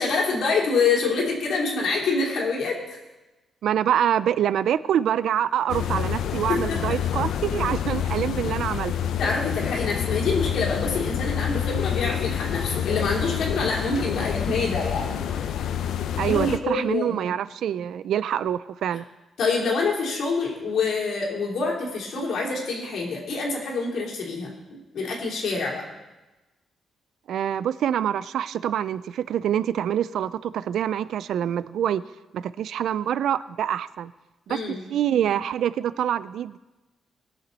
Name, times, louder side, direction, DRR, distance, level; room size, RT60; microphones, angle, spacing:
voice 1, 0.0-2.8 6.5-6.8 9.2-15.2 16.2-17.2 19.4-24.5 24.9-25.8 34.5-34.8, left 4 dB, 65° left, -2 dB, 3.3 m, -26 dB
voice 2, 3.6-8.9 16.2-19.0 27.3-32.0 32.3-34.1 34.5-36.6, right 10 dB, 75° right, 16 dB, 0.3 m, -25 dB
sound 1, 5.7-16.6, left 9 dB, 90° left, 0.6 m, -27 dB
20.5 x 7.1 x 4.1 m, 1.1 s
cardioid pair, 155°, 0 cm